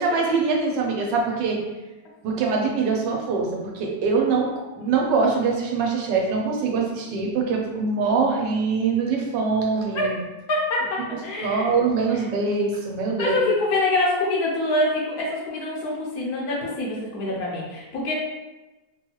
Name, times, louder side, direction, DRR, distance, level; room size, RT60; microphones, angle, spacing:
voice 1, 0.0-1.6 2.2-3.5 3.7-4.5 4.7-10.2 11.4-13.5, right 4 dB, 90° right, 0 dB, 1.3 m, -23 dB
voice 2, 10.5-11.8 12.1-12.2 13.2-18.1, left 2 dB, 65° left, -3 dB, 1.1 m, -25 dB
3.3 x 2.3 x 2.8 m, 1.1 s
omnidirectional pair, 1.9 m